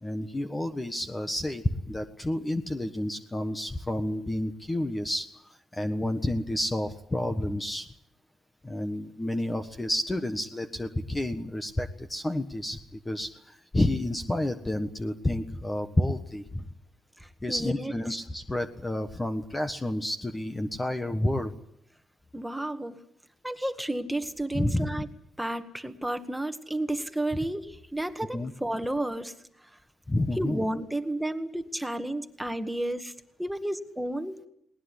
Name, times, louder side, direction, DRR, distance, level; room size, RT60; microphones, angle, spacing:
voice 1, 0.0-5.3 5.7-7.9 8.6-12.8 13.0-16.7 17.4-21.5 24.5-24.9 28.3-28.5 30.1-30.6, left 1 dB, 15° left, 8 dB, 1.4 m, -30 dB
voice 2, 17.2-17.9 22.3-23.0 23.4-25.1 25.4-29.3 29.6-29.7 30.4-33.1 33.4-34.5, right 1 dB, 5° right, 8 dB, 1.9 m, -32 dB
20.0 x 19.5 x 10.0 m, 0.71 s
cardioid pair, 90°, 0 cm